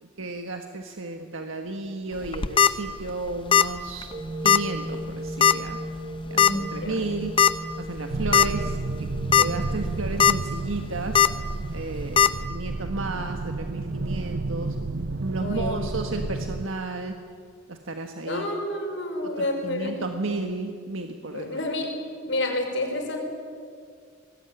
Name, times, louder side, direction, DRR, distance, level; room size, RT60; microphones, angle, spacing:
voice 1, 0.0-4.1 4.4-5.8 6.3-7.4 7.8-9.1 9.3-11.2 11.7-14.8 15.2-17.2 17.7-18.5 19.2-21.6, right 2 dB, 75° right, 4 dB, 1.5 m, -33 dB
sound 1, 2.2-2.7 3.5-3.8 4.0-4.1 4.5-4.6 5.4-5.7 6.4-6.5 7.4-7.5 8.0-8.1 8.3-8.5 9.1-9.4 9.9-10.3 11.1-11.3 12.2-12.3, left 9 dB, 25° left, 0.6 m, -17 dB
sound 2, 4.1-10.1, equal, 30° right, 1.5 m, -36 dB
voice 2, 6.3-7.0 15.4-15.9 18.3-20.0 21.3-21.9 22.3-23.2, left 1 dB, 60° left, 2 dB, 5.5 m, -29 dB
sound 3, 8.1-16.7, right 3 dB, 55° right, 0.7 m, -31 dB
24.0 x 19.5 x 9.7 m, 2.2 s
head